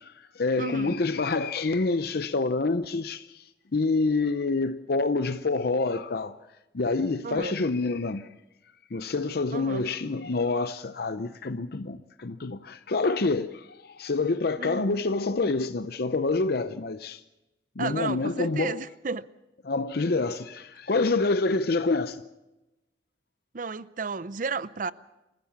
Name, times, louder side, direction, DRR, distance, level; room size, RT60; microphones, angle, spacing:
voice 1, 0.0-3.4 3.7-6.4 6.7-8.3 8.9-17.2 17.8-18.8 19.7-22.2, left 3 dB, 60° left, 0.7 m, -27 dB
voice 2, 0.6-1.0 7.2-7.6 9.5-9.9 14.6-15.0 17.8-19.3 23.5-24.9, right 4 dB, 45° right, 0.6 m, -33 dB
27.5 x 15.0 x 7.1 m
head